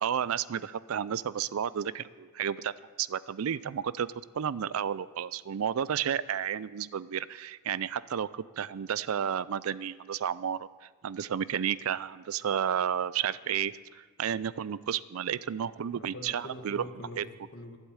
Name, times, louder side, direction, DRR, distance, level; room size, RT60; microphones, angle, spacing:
voice 1, 0.0-2.7 3.0-16.8 17.2-17.3, right 8 dB, 80° right, 19 dB, 0.4 m, -32 dB
voice 2, 16.0-17.8, left 1 dB, 60° left, 5 dB, 1.3 m, -44 dB
11.5 x 8.0 x 8.8 m, 1.5 s
head